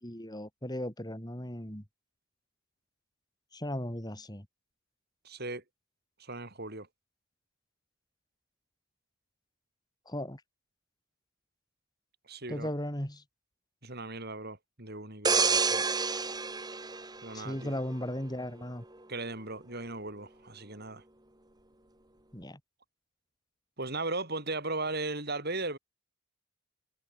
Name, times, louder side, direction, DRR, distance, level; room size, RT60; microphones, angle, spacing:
voice 1, 0.0-1.8 3.5-4.5 10.1-10.4 12.5-13.2 17.3-18.8 22.3-22.6, left 1 dB, 20° left, 4.1 m, -36 dB
voice 2, 5.2-5.6 6.2-6.9 12.3-12.7 13.8-15.8 17.2-17.8 19.1-21.0 23.8-25.8, right 2 dB, 45° right, 7.3 m, -37 dB
sound 1, 15.2-17.9 18.4-18.6, right 4 dB, 20° right, 2.8 m, -29 dB
head